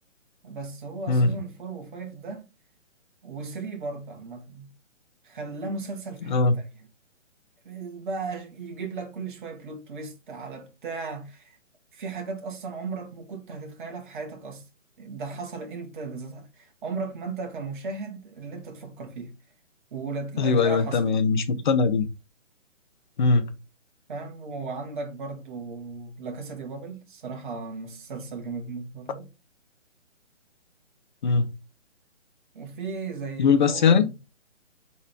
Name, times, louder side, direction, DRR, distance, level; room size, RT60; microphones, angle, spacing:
voice 1, 0.4-2.5 3.2-4.7 5.2-6.6 7.6-11.6 11.9-14.7 15.0-19.3 19.9-21.0 24.1-29.3 32.5-34.1, right 4 dB, 40° right, 1.4 m, -36 dB
voice 2, 20.4-22.1 23.2-23.5 31.2-31.5 33.4-34.1, left 4 dB, 40° left, 0.7 m, -21 dB
4.2 x 3.7 x 3.3 m
hypercardioid pair, 155°, 37 cm